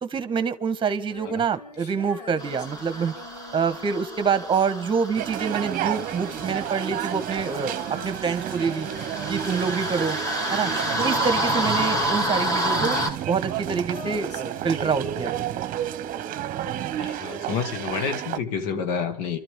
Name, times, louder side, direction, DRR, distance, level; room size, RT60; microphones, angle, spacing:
voice 1, 0.0-3.1 3.5-8.9 9.3-10.2 10.5-10.7 11.0-13.0 13.3-15.3, right 6 dB, 25° right, 1.6 m, -26 dB
Female singing, 1.0-16.3 17.9-18.0, left 4 dB, 85° left, 2.5 m, -44 dB
sound 1, 2.4-13.1, equal, 15° left, 2.6 m, -29 dB
sound 2, 5.2-18.4, right 11 dB, 45° right, 1.0 m, -31 dB
voice 2, 17.0-19.4, left 6 dB, 65° left, 2.0 m, -29 dB
29.0 x 13.0 x 3.8 m
hypercardioid pair, 90°, 20 cm